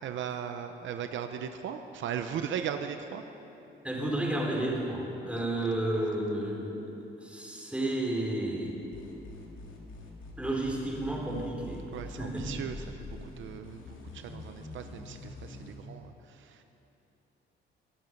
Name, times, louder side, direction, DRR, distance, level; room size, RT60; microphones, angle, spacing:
voice 1, 0.0-3.2 5.3-5.7 11.9-16.6, right 8 dB, 75° right, 8 dB, 0.8 m, -38 dB
voice 2, 3.8-8.7 10.4-11.8 12.2-12.6, right 1 dB, 5° right, -3 dB, 4.3 m, -32 dB
sound 1, 8.9-15.8, left 2 dB, 80° left, 2.8 m, -45 dB
22.0 x 11.0 x 5.4 m, 3.0 s
cardioid pair, 90°, 20 cm